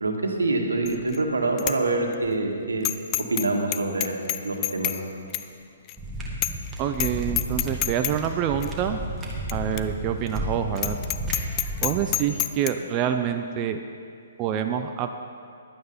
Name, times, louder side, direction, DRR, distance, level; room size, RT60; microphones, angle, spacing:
voice 1, 0.0-2.9 3.3-4.2 4.4-4.9, right 2 dB, 85° right, 2 dB, 1.7 m, -25 dB
Bicycle bell, 0.9-1.2 1.6-1.8 2.1-2.2 2.8-3.5 3.7-5.0 5.3-5.5 5.9-6.0 6.4-6.7 6.9-7.1 7.4-8.1 8.6-8.7 9.5-9.6 9.8-9.9 10.3-10.4 10.8-12.7, left 15 dB, 30° left, 0.5 m, -27 dB
sound 1, 6.0-12.1, right 1 dB, 15° right, 1.8 m, -32 dB
voice 2, 6.8-9.0 9.5-11.0 11.8-13.8 14.4-15.2, right 9 dB, 30° right, 6 dB, 0.5 m, -26 dB
11.5 x 9.3 x 5.6 m, 2.3 s
figure-of-eight pair, 130°, 0 cm